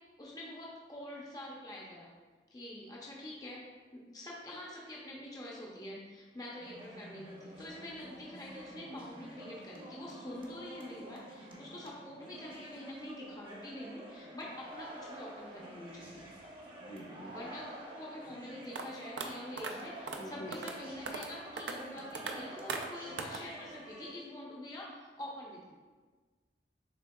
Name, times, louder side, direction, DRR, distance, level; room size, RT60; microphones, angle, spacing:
voice 1, 0.2-2.1 2.5-3.6 3.9-16.3 17.3-25.7, left 1 dB, 20° left, -4 dB, 0.6 m, -46 dB
sound 1, 6.6-24.1, right 1 dB, 30° right, 0.7 m, -49 dB
voice 2, 16.8-17.5 20.2-20.5, equal, 75° left, -4 dB, 1.1 m, -46 dB
sound 2, 18.7-18.8 19.2-19.3 19.6-19.7 20.1-20.2 20.5-20.8 21.1-21.3 21.6-21.7 22.1-22.3 22.7-22.9 23.2-23.4, right 4 dB, 75° right, 0.4 m, -38 dB
7.0 x 3.3 x 2.3 m, 1.4 s
head